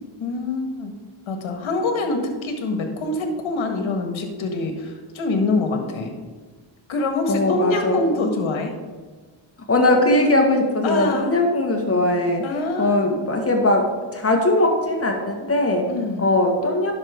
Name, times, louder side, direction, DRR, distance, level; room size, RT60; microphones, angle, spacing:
voice 1, 0.2-0.9 1.3-6.1 6.9-8.7 10.8-11.3 12.4-13.2 15.9-16.3, left 3 dB, 70° left, 4 dB, 1.8 m, -25 dB
voice 2, 7.3-8.0 9.7-12.5 12.8-13.9 14.1-15.9 16.2-16.9, left 1 dB, 30° left, 2 dB, 1.8 m, -20 dB
11.0 x 6.3 x 3.7 m, 1.4 s
cardioid pair, 75°, 49 cm